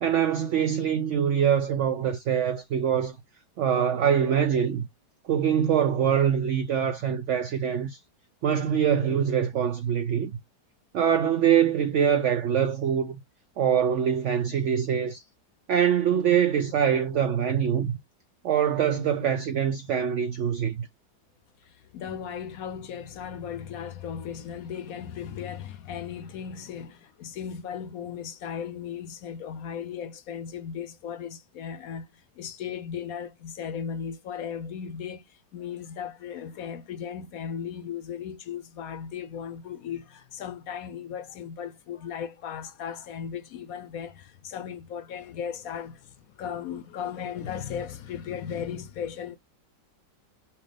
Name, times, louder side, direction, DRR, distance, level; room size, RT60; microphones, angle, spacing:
voice 1, 0.0-3.2 3.6-4.9 5.2-8.0 8.4-10.3 10.9-13.2 13.6-15.2 15.7-18.0 18.4-20.9, right 8 dB, 85° right, 0.6 m, -24 dB
voice 2, 21.6-49.4, left 8 dB, 70° left, 0.9 m, -36 dB
5.8 x 2.5 x 3.3 m
omnidirectional pair, 1.8 m